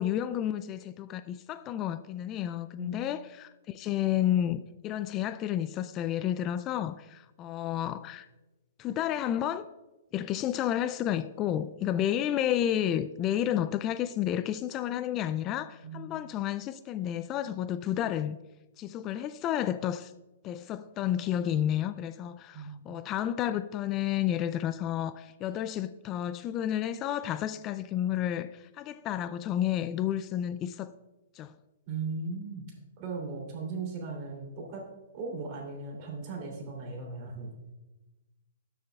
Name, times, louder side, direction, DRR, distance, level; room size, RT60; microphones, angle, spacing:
voice 1, 0.0-8.3 8.8-9.7 10.1-18.4 18.8-20.1 20.4-30.9 31.4-31.5, left 11 dB, 30° left, 0.3 m, -31 dB
voice 2, 15.8-16.2 22.5-22.8 31.9-32.7 33.0-34.8 35.1-37.5, right 4 dB, 40° right, 3.0 m, -37 dB
13.0 x 6.7 x 2.3 m
hypercardioid pair, 135°, 0 cm